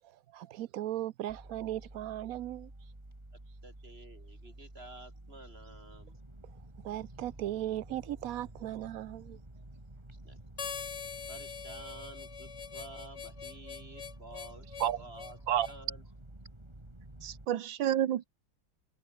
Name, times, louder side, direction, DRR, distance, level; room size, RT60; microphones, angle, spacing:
voice 1, 0.1-2.7 6.8-9.4, right 13 dB, 70° right, 0.8 m, -37 dB
sound 1, 1.3-17.5, right 1 dB, 15° right, 3.3 m, -51 dB
voice 2, 3.6-6.2 10.1-10.4 11.3-14.7 15.0-16.0 17.8-17.9, right 2 dB, 30° right, 5.2 m, -51 dB
Harmonica, 10.6-15.8, left 6 dB, 40° left, 1.4 m, -43 dB
voice 3, 17.2-18.3, right 11 dB, 90° right, 1.8 m, -29 dB
omnidirectional pair, 2.0 m